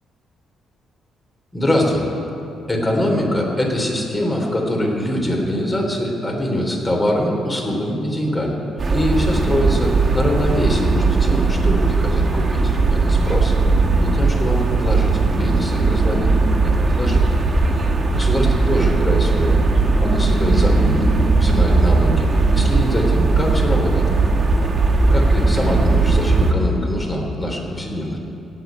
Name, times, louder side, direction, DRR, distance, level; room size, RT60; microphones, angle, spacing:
voice 1, 1.5-2.0 2.7-8.6 8.9-13.6 14.0-17.3 18.1-19.6 20.0-21.1 21.4-24.1 25.1-28.2, left 1 dB, 20° left, 0 dB, 3.3 m, -23 dB
sound 1, 8.8-26.5, right 3 dB, 35° right, 2.0 m, -17 dB
17.0 x 7.3 x 9.2 m, 2.8 s
cardioid pair, 90°, 0 cm